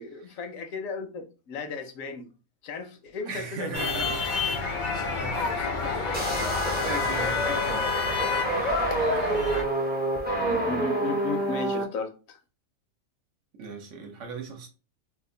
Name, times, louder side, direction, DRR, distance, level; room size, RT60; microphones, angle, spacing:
voice 1, 0.0-2.3 2.6-4.1 5.4-5.9 10.4-12.4, left 4 dB, 75° left, 1.0 m, -35 dB
voice 2, 3.3-4.2 4.9-5.4 5.9-6.3 6.8-8.0 13.6-14.7, right 4 dB, 65° right, 1.0 m, -37 dB
sound 1, 3.7-9.6, left 4 dB, 55° left, 0.5 m, -28 dB
sound 2, 6.1-11.8, right 2 dB, 15° right, 0.4 m, -28 dB
2.8 x 2.4 x 3.6 m
omnidirectional pair, 1.5 m